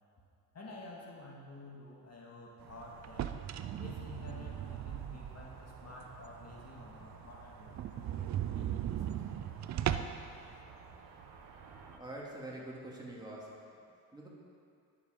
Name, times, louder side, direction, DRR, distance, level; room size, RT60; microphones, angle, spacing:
voice 1, 0.5-3.3 3.8-8.1 8.5-9.6, left 2 dB, 40° left, -2 dB, 2.0 m, -50 dB
sound 1, 2.6-12.0, right 5 dB, 65° right, 1.3 m, -53 dB
sound 2, 3.0-5.6 6.0-6.1 6.5-6.6 6.9-7.0 7.2-7.3 7.7-10.3, right 11 dB, 45° right, 0.5 m, -37 dB
voice 2, 11.9-13.5 14.1-14.3, right 1 dB, 10° right, -4 dB, 2.6 m, -45 dB
11.0 x 7.5 x 5.3 m, 2.4 s
supercardioid pair, 85°, 41 cm